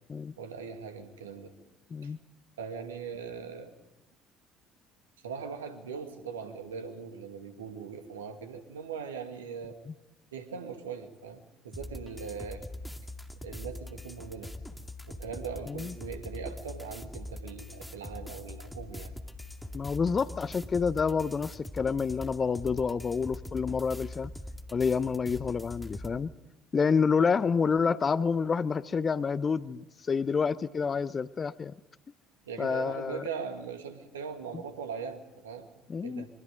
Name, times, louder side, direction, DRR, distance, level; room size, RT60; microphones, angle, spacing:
voice 1, 0.4-1.6 2.0-2.1 2.6-3.7 5.2-9.8 10.3-12.7 13.4-14.5 15.1-19.1 32.5-36.3, right 6 dB, 75° right, 7 dB, 2.1 m, -40 dB
sound 1, 11.7-26.2, left 1 dB, 5° left, 2.3 m, -42 dB
voice 2, 19.7-24.3 24.7-26.3 26.7-31.7 32.6-33.2 35.9-36.3, left 5 dB, 30° left, 17 dB, 0.8 m, -28 dB
26.0 x 24.0 x 5.2 m, 0.93 s
figure-of-eight pair, 55°, 0 cm